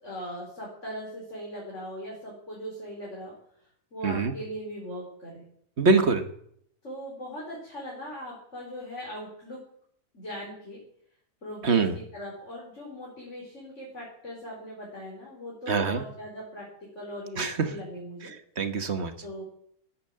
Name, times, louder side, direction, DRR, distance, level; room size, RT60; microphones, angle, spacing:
voice 1, 0.0-3.3 3.9-5.4 6.8-9.6 10.1-10.8 11.4-16.7 17.0-18.3 19.2-19.4, equal, 50° left, -4 dB, 5.1 m, -39 dB
voice 2, 4.0-4.3 5.8-6.2 11.6-11.9 15.7-16.0 17.4-17.6 18.6-19.1, right 4 dB, 45° right, 9 dB, 1.5 m, -24 dB
14.5 x 10.5 x 7.6 m, 0.67 s
omnidirectional pair, 1.6 m